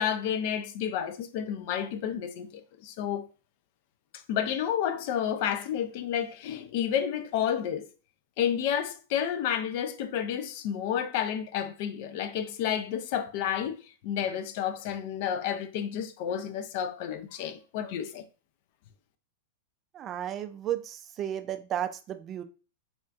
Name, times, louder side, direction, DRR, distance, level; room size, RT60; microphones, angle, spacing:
voice 1, 0.0-3.3 4.1-7.9 8.4-13.8 14.0-18.2, left 9 dB, 55° left, 0.4 m, -30 dB
voice 2, 19.9-22.4, right 10 dB, 35° right, 0.3 m, -33 dB
3.6 x 2.3 x 2.3 m
hypercardioid pair, 105°, 0 cm